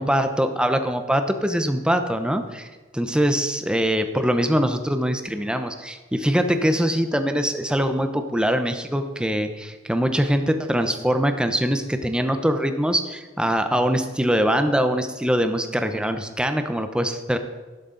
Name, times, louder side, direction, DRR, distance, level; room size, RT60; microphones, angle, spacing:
voice 1, 0.0-2.7 2.9-17.4, equal, 5° right, 7 dB, 0.7 m, -23 dB
11.5 x 10.5 x 3.9 m, 1.3 s
head